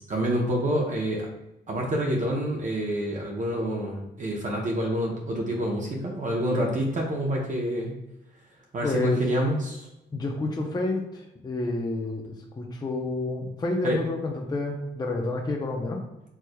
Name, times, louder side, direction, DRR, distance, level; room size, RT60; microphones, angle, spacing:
voice 1, 0.1-1.3 1.7-8.0 8.7-9.9 13.8-14.0, right 1 dB, 40° right, -1 dB, 0.8 m, -27 dB
voice 2, 8.8-9.2 10.1-16.0, left 2 dB, 20° left, 0 dB, 0.6 m, -29 dB
4.5 x 3.2 x 2.3 m, 0.93 s
cardioid pair, 90°, 20 cm